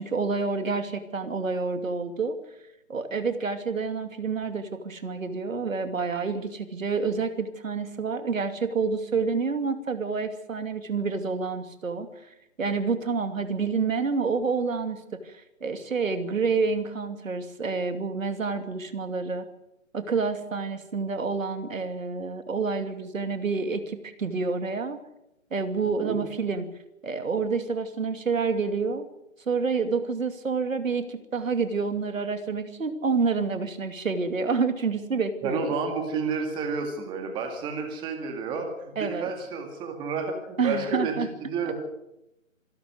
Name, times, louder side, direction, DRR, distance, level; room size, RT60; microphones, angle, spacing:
voice 1, 0.0-2.4 2.9-12.1 12.6-19.5 19.9-25.0 25.5-26.7 27.0-29.1 29.5-35.6 39.0-39.3 40.6-41.3 41.6-41.7, right 4 dB, 70° right, 8 dB, 2.7 m, -28 dB
voice 2, 35.4-41.1 41.4-41.7, right 5 dB, 10° right, 4 dB, 2.1 m, -30 dB
26.0 x 12.5 x 8.0 m, 0.87 s
hypercardioid pair, 155°, 40 cm